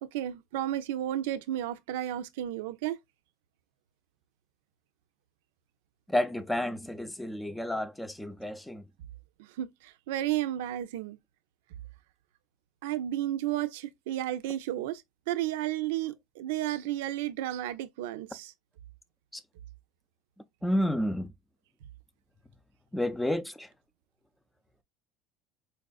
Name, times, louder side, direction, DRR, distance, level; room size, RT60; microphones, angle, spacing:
voice 1, 0.0-3.0 9.4-11.2 12.8-15.0 15.3-18.5, right 13 dB, 90° right, 0.4 m, -32 dB
voice 2, 6.1-8.9 19.3-19.4 20.6-21.3 22.9-23.7, left 1 dB, 5° left, 0.5 m, -30 dB
4.5 x 2.5 x 2.3 m
supercardioid pair, 110°, 0 cm